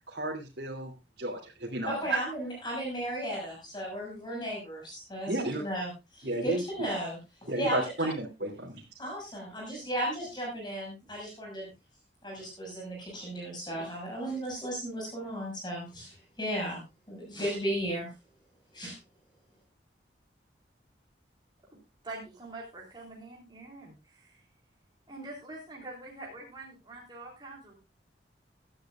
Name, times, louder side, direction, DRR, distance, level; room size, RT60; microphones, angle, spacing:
voice 1, 0.1-0.9 1.2-2.2 5.3-5.6 6.2-6.6 7.5-8.8, right 2 dB, 70° right, -2 dB, 2.9 m, -32 dB
voice 2, 1.8-8.1 9.0-11.7 12.2-16.8 17.1-18.1 18.7-19.0, right 1 dB, 25° left, -2 dB, 6.1 m, -35 dB
voice 3, 21.7-24.4 25.1-27.8, right 2 dB, 25° right, -2 dB, 3.5 m, -45 dB
16.5 x 12.0 x 2.5 m, 0.25 s
head